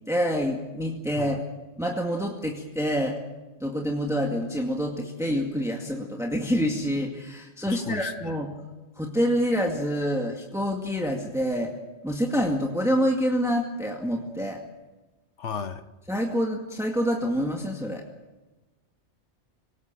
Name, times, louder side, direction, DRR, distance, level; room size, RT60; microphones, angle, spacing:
voice 1, 0.1-1.4 1.8-3.2 3.6-8.5 9.0-11.7 12.0-14.6 16.1-18.0, equal, ahead, 1 dB, 2.2 m, -27 dB
voice 2, 7.7-8.1 15.4-15.8, left 7 dB, 90° left, 11 dB, 1.4 m, -34 dB
26.5 x 18.5 x 7.6 m, 1.1 s
omnidirectional pair, 1.2 m